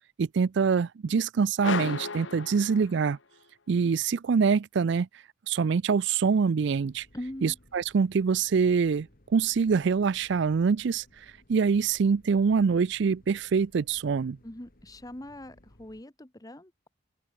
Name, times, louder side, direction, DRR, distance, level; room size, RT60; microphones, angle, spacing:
voice 1, 0.2-3.2 3.7-5.1 5.5-7.1 7.4-9.1 9.3-11.0 11.5-14.4, right 5 dB, 60° right, 0.4 m, -25 dB
sound 1, 1.6-3.4, left 4 dB, 65° left, 1.3 m, -34 dB
sound 2, 6.7-16.0, left 1 dB, 45° left, 2.7 m, -60 dB
voice 2, 7.1-7.6 14.4-16.9, left 1 dB, 20° left, 1.2 m, -42 dB
open air
head